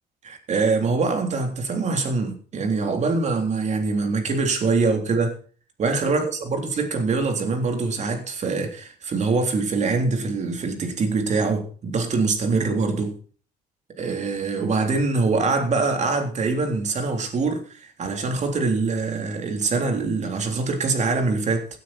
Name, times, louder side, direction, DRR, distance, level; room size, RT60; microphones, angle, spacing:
voice 1, 0.2-5.4 5.8-13.2 14.0-21.7, right 4 dB, 45° right, 3.5 m, -24 dB
16.5 x 9.4 x 4.3 m
cardioid pair, 110°, 17 cm